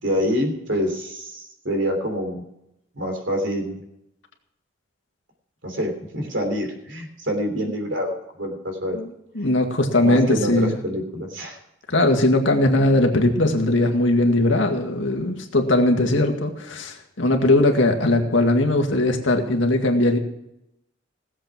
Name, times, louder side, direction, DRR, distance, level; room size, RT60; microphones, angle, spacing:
voice 1, 0.0-2.4 2.9-3.8 5.6-9.0 9.4-9.5 10.0-11.6, equal, 65° right, 3 dB, 3.2 m, -26 dB
voice 2, 9.4-10.8 11.9-20.2, left 1 dB, 70° left, 3 dB, 2.0 m, -19 dB
18.0 x 7.7 x 6.0 m, 0.86 s
head